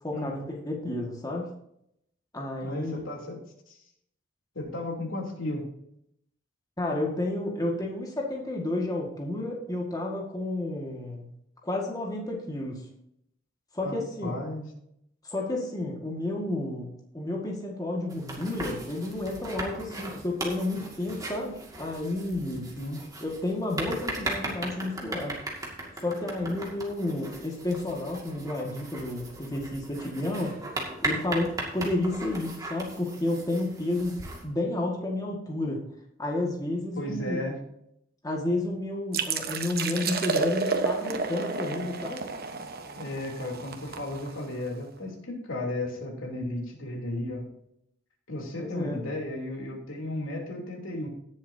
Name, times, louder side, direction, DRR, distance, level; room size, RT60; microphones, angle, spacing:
voice 1, 0.0-1.5 2.3-3.0 6.8-11.2 11.6-12.9 13.7-14.5 15.2-22.7 23.2-25.4 26.0-30.5 31.0-34.1 34.4-35.8 36.2-37.4 38.2-42.2 48.6-49.0, left 2 dB, 20° left, -1 dB, 1.8 m, -31 dB
voice 2, 2.6-3.4 3.7-3.8 4.5-5.6 13.8-14.7 22.7-23.0 36.9-37.6 43.0-47.4 48.3-51.1, left 1 dB, 80° left, 0 dB, 3.2 m, -34 dB
sound 1, 18.1-34.4, right 2 dB, 20° right, 2.2 m, -38 dB
sound 2, 39.1-44.7, right 4 dB, 50° right, 1.1 m, -31 dB
18.0 x 7.4 x 2.8 m, 0.75 s
head